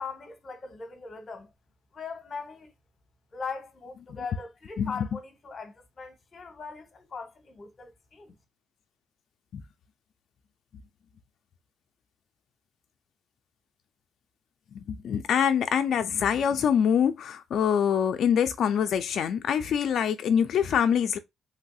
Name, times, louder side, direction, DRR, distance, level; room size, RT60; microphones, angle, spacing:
voice 1, 0.0-1.5 1.9-2.7 3.3-8.4, left 5 dB, 40° left, 0.9 m, -40 dB
voice 2, 14.9-21.2, left 8 dB, 65° left, 0.3 m, -24 dB
3.2 x 2.6 x 2.3 m
cardioid pair, 90°, 0 cm